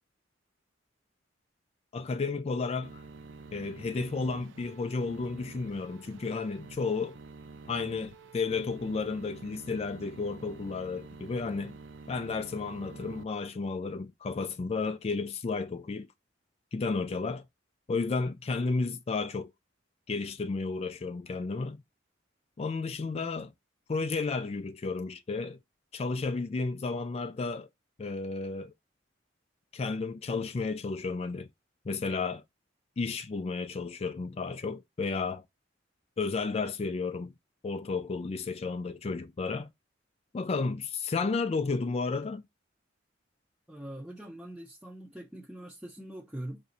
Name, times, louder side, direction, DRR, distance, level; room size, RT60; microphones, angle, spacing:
voice 1, 1.9-3.0 3.5-7.2 7.7-11.8 12.1-16.1 16.7-17.5 17.9-19.5 20.1-21.8 22.6-23.5 23.9-25.6 25.9-27.7 28.0-28.7 29.7-31.5 31.9-32.4 33.0-35.4 36.2-37.3 37.6-39.7 40.3-42.5, left 4 dB, 35° left, 0.3 m, -32 dB
sound 1, 2.8-13.2, right 4 dB, 75° right, 0.5 m, -48 dB
voice 2, 43.7-46.6, right 1 dB, 5° right, 0.6 m, -43 dB
4.8 x 2.6 x 4.1 m
head